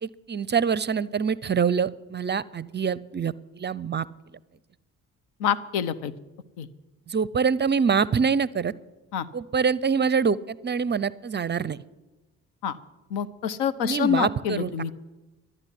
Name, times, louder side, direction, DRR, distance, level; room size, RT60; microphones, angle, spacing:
voice 1, 0.0-4.1 7.1-8.7 9.3-11.8 13.8-14.9, right 6 dB, 25° right, 20 dB, 0.5 m, -25 dB
voice 2, 5.4-6.1 6.6-6.7 9.1-9.3 12.6-12.8 13.1-14.9, left 8 dB, 75° left, 14 dB, 0.8 m, -26 dB
12.0 x 9.7 x 8.4 m, 1.1 s
hypercardioid pair, 45°, 40 cm